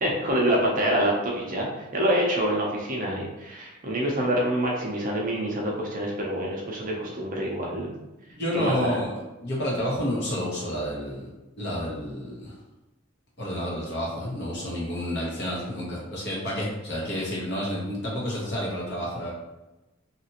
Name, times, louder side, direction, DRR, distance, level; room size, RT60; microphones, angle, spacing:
voice 1, 0.0-7.9 8.5-9.0, right 1 dB, 40° right, -2 dB, 0.5 m, -26 dB
voice 2, 8.3-9.1 9.4-11.3 11.6-12.5 13.4-19.3, equal, 55° left, -5 dB, 1.0 m, -30 dB
2.9 x 2.4 x 2.8 m, 1.0 s
head